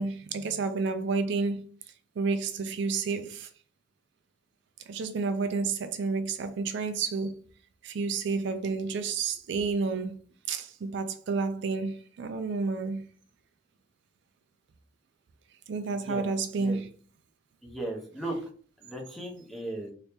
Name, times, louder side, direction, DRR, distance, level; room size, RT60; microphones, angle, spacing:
voice 1, 0.0-1.7 2.2-3.5 4.9-7.4 7.8-10.2 10.5-13.1 15.7-16.9, right 4 dB, 65° right, 0.4 m, -30 dB
voice 2, 17.6-18.4 18.8-19.9, right 2 dB, ahead, 0.8 m, -36 dB
2.8 x 2.7 x 3.4 m
head